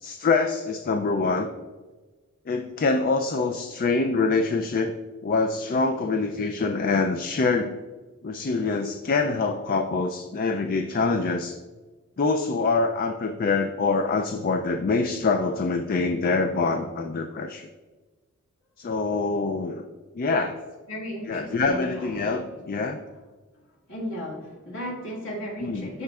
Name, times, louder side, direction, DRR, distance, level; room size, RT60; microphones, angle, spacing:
voice 1, 0.0-1.5 2.5-4.9 5.2-7.7 8.2-11.6 12.2-17.7 18.8-19.9 20.1-20.6 21.3-23.0 25.6-25.9, left 3 dB, 40° left, 6 dB, 0.3 m, -25 dB
voice 2, 20.9-22.3 23.9-26.0, equal, 55° left, -3 dB, 1.9 m, -35 dB
12.0 x 4.2 x 2.3 m, 1.3 s
head